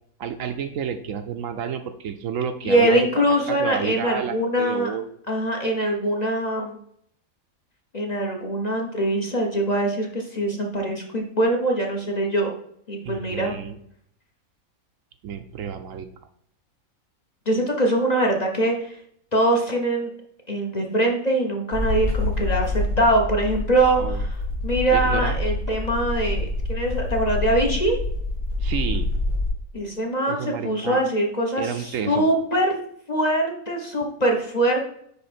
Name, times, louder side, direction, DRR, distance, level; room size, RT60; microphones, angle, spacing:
voice 1, 0.2-5.2 13.0-13.8 15.2-16.1 24.0-24.2 24.9-25.4 28.6-29.1 30.3-31.0 31.6-32.3, right 7 dB, 70° right, 8 dB, 1.0 m, -30 dB
voice 2, 2.6-4.9 5.3-6.8 7.9-12.5 12.9-13.6 17.5-19.0 19.3-20.1 20.5-24.3 24.6-28.0 29.7-32.8 33.1-34.8, right 1 dB, 30° left, 1 dB, 1.1 m, -23 dB
sound 1, 21.7-29.5, left 2 dB, 90° left, 3.3 m, -26 dB
9.6 x 3.5 x 4.3 m, 0.69 s
omnidirectional pair, 1.5 m